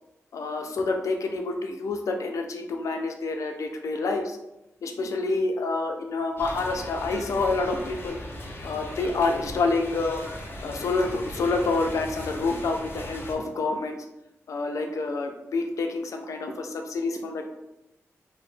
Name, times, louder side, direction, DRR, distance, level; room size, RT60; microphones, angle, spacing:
voice 1, 0.3-4.4 4.8-8.2 8.6-10.2 10.6-13.9 14.5-17.4, left 3 dB, 90° left, 4 dB, 0.4 m, -28 dB
sound 1, 6.4-13.3, left 1 dB, 45° left, 0.6 m, -38 dB
3.0 x 2.0 x 3.2 m, 0.89 s
wide cardioid pair, 130°, 5 cm